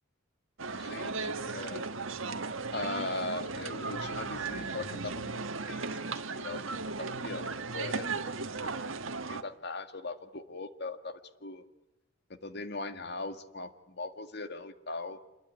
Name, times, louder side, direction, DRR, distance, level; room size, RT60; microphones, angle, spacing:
sound 1, 0.6-9.4, right 4 dB, 85° right, 1.6 m, -36 dB
voice 1, 0.7-1.9 2.7-6.6 7.0-8.4 8.6-9.0 9.3-11.6 12.3-15.2, left 3 dB, 55° left, 8 dB, 1.9 m, -40 dB
28.0 x 21.5 x 9.8 m, 0.94 s
head